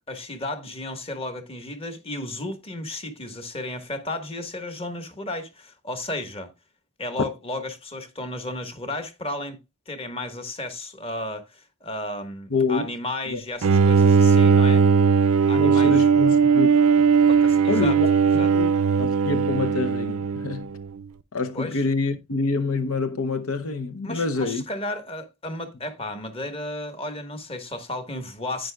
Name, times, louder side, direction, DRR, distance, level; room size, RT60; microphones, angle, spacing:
voice 1, 0.1-6.5 7.0-9.6 9.9-14.9 15.5-16.1 17.3-18.0 18.4-18.5 21.5-21.9 24.0-28.7, left 1 dB, 25° left, 1.4 m, -33 dB
voice 2, 12.5-12.9 13.3-13.4 15.5-16.7 17.7-18.7 19.0-20.7 21.3-24.6, left 3 dB, 75° left, 0.8 m, -26 dB
Bowed string instrument, 13.6-20.9, right 6 dB, 80° right, 0.5 m, -18 dB
11.0 x 9.3 x 2.3 m
head